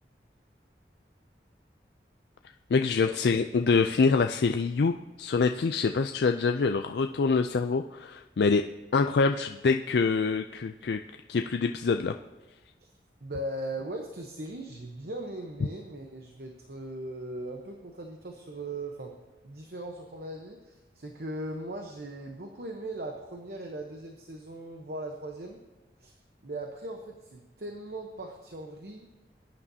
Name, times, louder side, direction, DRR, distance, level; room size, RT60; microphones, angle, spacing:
voice 1, 2.7-4.9 5.2-8.7 8.9-11.0 11.3-12.1, left 4 dB, 70° left, 6 dB, 0.4 m, -25 dB
voice 2, 13.2-19.1 19.4-25.6 26.0-26.1 26.4-29.1, right 1 dB, 60° right, 3 dB, 1.0 m, -39 dB
20.5 x 9.7 x 2.8 m, 1.2 s
head